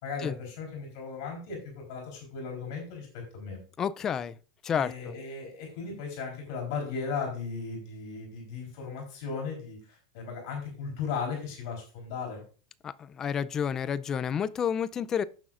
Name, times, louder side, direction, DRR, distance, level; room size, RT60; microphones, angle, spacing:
voice 1, 0.0-3.6 4.7-12.4, left 5 dB, 55° left, 3.8 m, -36 dB
voice 2, 3.8-4.3 4.6-5.1 12.8-12.9 13.2-15.2, left 8 dB, 20° left, 0.4 m, -30 dB
15.0 x 6.2 x 2.5 m
supercardioid pair, 160°, 2 cm